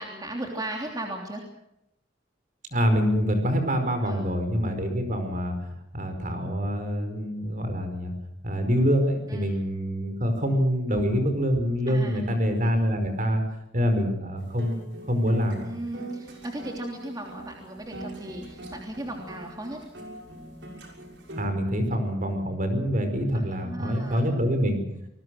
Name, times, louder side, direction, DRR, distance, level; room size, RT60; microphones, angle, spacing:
voice 1, 0.0-1.4 4.0-4.2 9.3-9.5 11.9-12.7 15.6-19.8 23.3-24.2, right 1 dB, 20° right, 1 dB, 3.1 m, -37 dB
voice 2, 2.7-5.6 5.9-8.1 8.4-13.4 13.7-15.7 21.3-24.8, equal, 45° right, 6 dB, 5.1 m, -25 dB
sound 1, 14.4-21.5, right 1 dB, 65° right, 6.4 m, -42 dB
28.0 x 20.5 x 6.4 m, 0.82 s
head